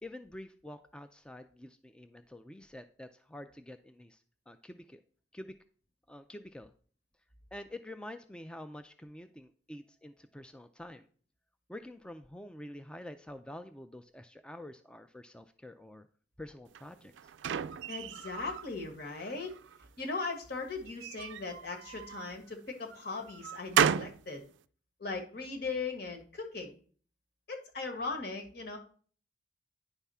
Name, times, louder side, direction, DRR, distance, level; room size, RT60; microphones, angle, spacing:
voice 1, 0.0-5.0 5.3-5.5 6.1-6.7 7.5-11.1 11.7-16.1 16.4-17.3, left 1 dB, 5° left, 8 dB, 0.3 m, -47 dB
sound 1, 16.7-18.7 19.1-19.9 20.9-22.3 22.9-24.2, right 8 dB, 75° right, 0.3 m, -33 dB
voice 2, 17.9-19.6 20.0-24.4 25.0-26.7 27.5-28.8, left 3 dB, 60° left, 4 dB, 1.5 m, -38 dB
9.9 x 3.5 x 5.5 m, 0.44 s
head